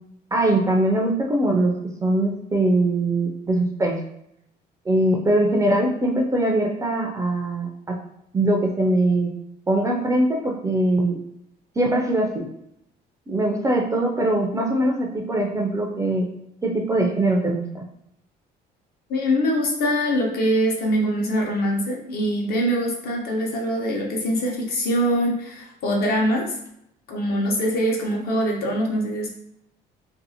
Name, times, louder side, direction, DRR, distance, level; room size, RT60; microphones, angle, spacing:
voice 1, 0.3-4.0 4.9-7.9 8.3-9.3 9.7-11.2 11.8-12.5 13.3-16.3 16.6-17.8, right 1 dB, 20° right, -1 dB, 0.4 m, -22 dB
voice 2, 19.1-26.6 27.1-29.3, equal, 65° left, 0 dB, 0.9 m, -23 dB
2.6 x 2.4 x 2.7 m, 0.78 s
cardioid pair, 110°, 17 cm